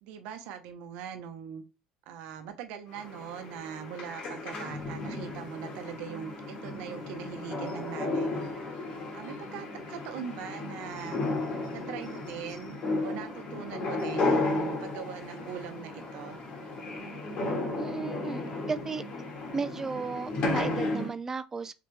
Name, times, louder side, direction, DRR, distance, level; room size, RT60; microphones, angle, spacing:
voice 1, 0.0-1.6 2.1-8.6 9.1-11.2 11.7-16.4, right 8 dB, 70° right, 0.8 m, -41 dB
sound 1, 2.9-21.1, left 2 dB, 50° left, 1.7 m, -34 dB
voice 2, 17.8-19.0 19.5-21.7, right 5 dB, 20° right, 0.4 m, -35 dB
3.8 x 3.4 x 3.3 m
supercardioid pair, 110°, 2 cm